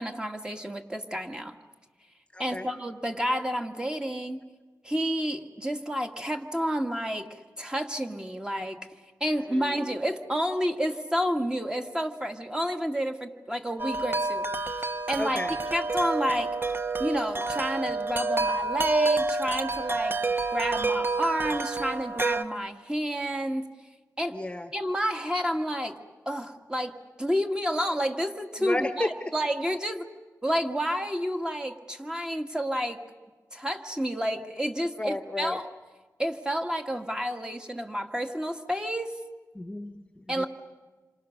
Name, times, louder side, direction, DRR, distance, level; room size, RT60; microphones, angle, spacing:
voice 1, 0.0-1.6 2.4-4.4 4.8-8.8 9.2-14.5 15.1-15.4 15.7-16.5 17.0-20.2 20.5-23.7 24.2-24.4 24.7-26.0 26.3-30.1 30.4-33.0 33.5-35.7 36.2-39.2 40.3-40.5, equal, 10° right, 4 dB, 1.9 m, -30 dB
voice 2, 2.3-2.7 9.5-9.7 15.2-15.5 24.3-24.7 28.6-29.1 35.0-35.6 39.5-40.5, left 1 dB, 15° left, 8 dB, 1.3 m, -32 dB
Wind chime, 13.8-22.4, right 3 dB, 35° right, 1.1 m, -28 dB
28.0 x 26.0 x 6.5 m, 1.3 s
wide cardioid pair, 70°, 7 cm